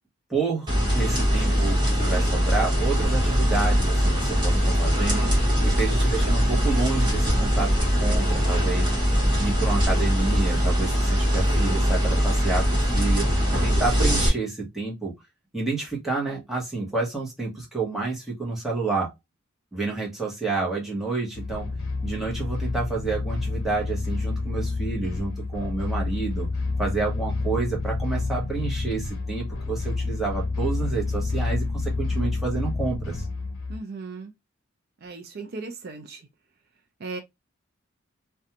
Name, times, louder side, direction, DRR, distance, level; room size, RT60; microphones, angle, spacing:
voice 1, 0.3-0.7 0.9-8.9 9.3-13.3 13.6-15.1 15.5-19.1 19.7-21.7 22.0-26.5 26.8-33.3, right 3 dB, ahead, 0.9 m, -29 dB
sound 1, 0.7-14.3, equal, 25° right, 1.2 m, -22 dB
sound 2, 21.3-33.8, left 3 dB, 80° left, 0.6 m, -29 dB
voice 2, 33.7-34.3 35.0-36.3 37.0-37.2, right 3 dB, 50° right, 0.5 m, -37 dB
2.5 x 2.2 x 2.8 m
head